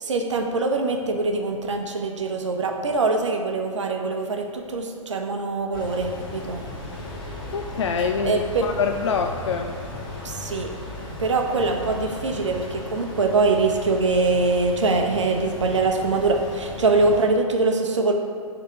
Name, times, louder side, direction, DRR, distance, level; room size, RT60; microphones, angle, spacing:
voice 1, 0.0-6.6 8.2-8.7 10.2-10.7 11.2-18.1, right 3 dB, 60° right, 3 dB, 0.8 m, -23 dB
sound 1, 5.7-17.3, left 1 dB, 45° left, 1.4 m, -36 dB
voice 2, 7.5-9.7, left 6 dB, 60° left, 5 dB, 0.4 m, -25 dB
6.4 x 3.9 x 4.9 m, 2.4 s
figure-of-eight pair, 115°, 17 cm